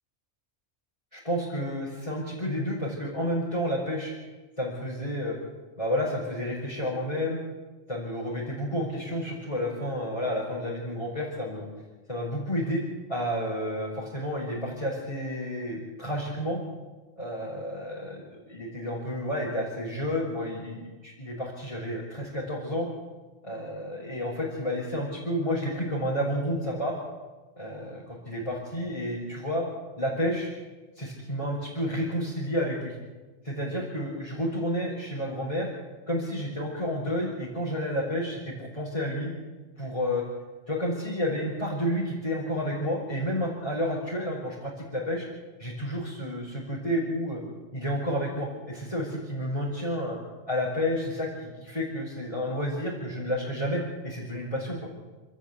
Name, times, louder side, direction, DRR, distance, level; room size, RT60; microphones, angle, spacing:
voice 1, 1.1-4.1 4.6-5.4 5.8-7.4 7.9-11.7 12.1-12.8 13.1-16.6 17.2-22.9 23.4-26.9 27.6-29.6 30.0-30.5 31.0-33.0 33.4-35.7 36.1-39.3 39.8-40.2 40.7-45.2 45.6-47.4 47.7-50.2 50.5-54.8, equal, 30° left, -6 dB, 5.2 m, -30 dB
29.0 x 13.5 x 8.3 m, 1.3 s
omnidirectional pair, 1.2 m